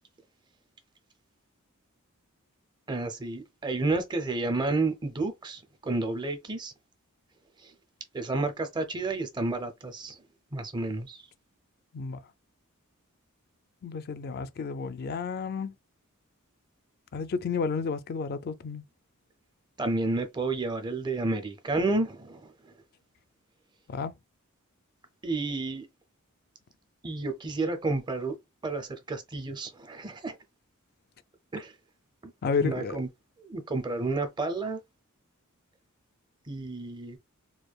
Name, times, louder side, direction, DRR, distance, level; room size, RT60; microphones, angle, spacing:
voice 1, 2.9-6.7 7.6-7.7 8.1-10.2 10.5-11.2 19.8-22.7 25.2-25.9 27.0-28.3 28.6-30.4 31.5-31.7 32.2-32.3 32.6-33.1 33.4-34.8 36.5-37.2, right 3 dB, 20° right, 0.5 m, -31 dB
voice 2, 13.8-15.7 17.1-18.8 23.9-24.1 32.4-33.0, left 5 dB, 45° left, 0.4 m, -31 dB
4.6 x 2.2 x 2.3 m
head